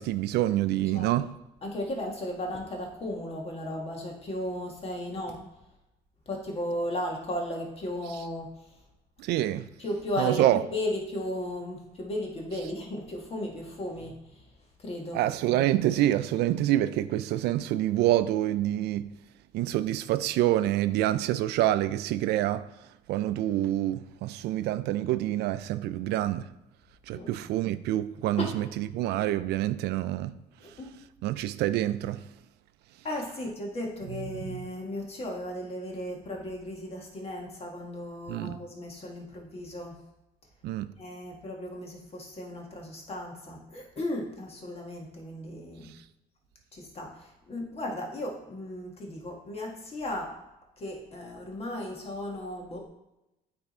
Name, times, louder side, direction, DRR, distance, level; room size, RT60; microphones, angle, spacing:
voice 1, 0.0-1.3 9.2-9.7 10.2-10.6 15.1-19.1 19.5-22.6 23.1-26.4 27.1-30.3 31.2-32.2 38.3-38.6 40.6-40.9, right 13 dB, 80° right, 0.4 m, -27 dB
voice 2, 1.6-5.4 6.3-8.6 9.8-10.4 10.7-14.4 14.8-15.2 27.1-27.3 28.4-28.5 30.6-30.9 33.0-40.0 41.0-45.9 46.7-50.4 50.8-52.9, left 1 dB, 35° left, 1.7 m, -35 dB
8.8 x 3.5 x 4.3 m
cardioid pair, 110°, 17 cm